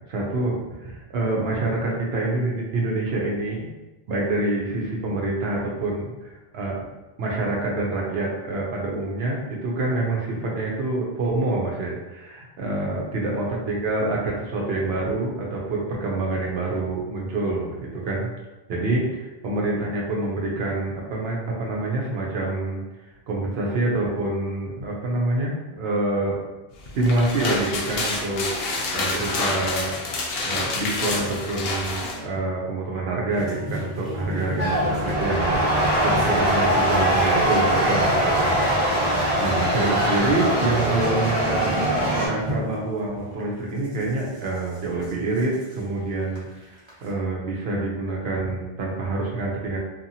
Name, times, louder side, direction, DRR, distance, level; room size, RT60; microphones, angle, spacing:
voice 1, 0.1-3.7 4.1-6.9 7.2-18.3 18.7-22.8 23.3-26.4 26.9-30.0 30.4-35.6 36.0-38.6 39.4-41.8 42.1-49.8, right 2 dB, 75° right, -2 dB, 0.8 m, -26 dB
opening cat food bag, 26.9-32.2, left 3 dB, 70° left, 0.8 m, -28 dB
sound 1, 33.3-43.1 43.8-45.8 46.4-46.5 46.6-47.0, equal, 35° right, 0.7 m, -34 dB
sound 2, 34.6-42.3, right 1 dB, 10° right, 0.9 m, -22 dB
2.7 x 2.4 x 2.6 m, 1.1 s
omnidirectional pair, 1.1 m